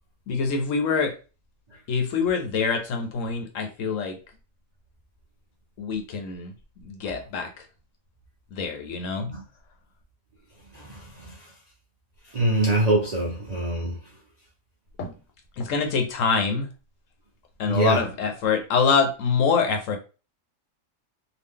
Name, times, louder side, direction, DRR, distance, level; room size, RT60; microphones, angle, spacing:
voice 1, 0.3-1.1 1.9-4.2 5.8-6.5 6.8-7.6 8.5-9.3 15.0-15.1 15.6-16.7 17.6-20.0, left 5 dB, 70° left, 1.0 m, -25 dB
voice 2, 10.7-11.5 12.2-14.2 17.7-18.1, right 2 dB, 45° right, 0.5 m, -25 dB
2.8 x 2.3 x 3.5 m
omnidirectional pair, 1.5 m